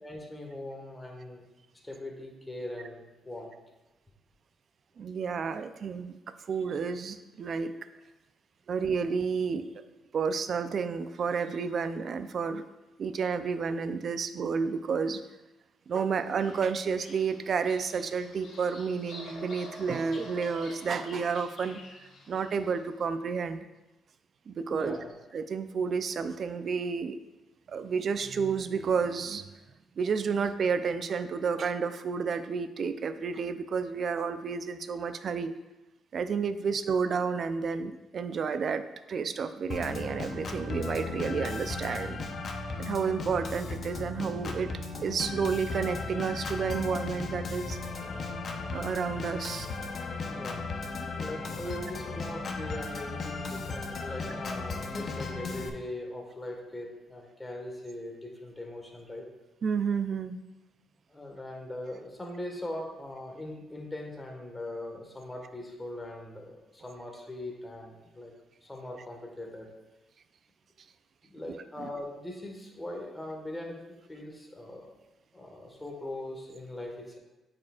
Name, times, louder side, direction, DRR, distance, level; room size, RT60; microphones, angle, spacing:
voice 1, 0.0-1.4 1.8-3.5 24.7-25.1 36.6-36.7 50.3-50.8 51.2-59.3 61.1-68.3 68.6-69.7 71.2-73.8 74.1-74.9 75.3-77.2, left 1 dB, 15° left, 1 dB, 1.4 m, -40 dB
voice 2, 5.0-6.2 6.5-7.7 8.7-9.7 10.1-12.6 13.0-15.2 15.9-23.7 24.5-25.0 25.3-27.2 27.7-29.5 30.0-35.5 36.1-42.2 42.8-47.9 48.7-49.7 59.6-60.4 71.5-71.9, right 5 dB, 55° right, 11 dB, 0.4 m, -31 dB
Bird vocalization bird call bird song, 16.1-22.8, left 2 dB, 65° left, 1.3 m, -48 dB
Organ, 39.7-55.7, left 3 dB, 50° left, 0.7 m, -36 dB
8.5 x 4.9 x 2.4 m, 1.1 s
cardioid pair, 90°, 0 cm